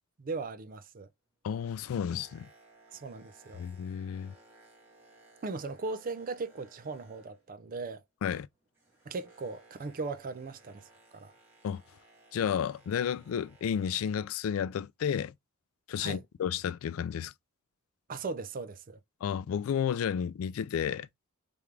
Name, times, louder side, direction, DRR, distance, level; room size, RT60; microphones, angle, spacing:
voice 1, 0.2-1.1 2.9-3.6 5.4-8.0 9.1-10.8 11.1-11.3 16.0-16.2 18.1-19.0, right 3 dB, 40° right, 0.5 m, -38 dB
voice 2, 1.4-2.5 3.6-4.3 8.2-8.5 11.6-11.8 12.3-15.3 15.9-17.3 19.2-21.1, left 8 dB, 75° left, 0.3 m, -32 dB
Boat Water vehicle, 1.7-7.7 8.0-14.4 15.1-15.2, right 2 dB, 10° right, 1.9 m, -60 dB
3.5 x 3.5 x 3.2 m
head